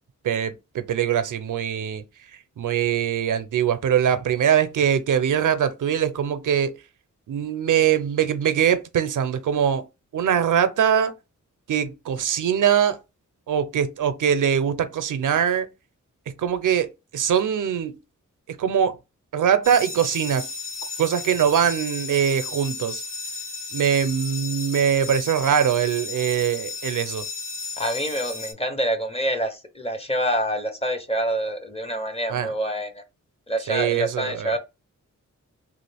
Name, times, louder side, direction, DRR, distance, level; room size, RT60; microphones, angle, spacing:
voice 1, 0.2-2.0 2.6-6.7 7.3-9.9 10.1-11.1 11.7-13.0 13.5-15.7 16.3-18.0 18.5-19.0 19.3-20.5 21.0-23.0 23.7-27.3 32.3-32.5 33.7-34.5, right 8 dB, 80° right, 0.5 m, -22 dB
sound 1, 19.6-28.5, left 3 dB, 85° left, 1.0 m, -34 dB
voice 2, 27.8-33.0 33.5-34.6, right 1 dB, 20° left, 0.6 m, -26 dB
3.1 x 2.4 x 3.3 m
wide cardioid pair, 130°, 31 cm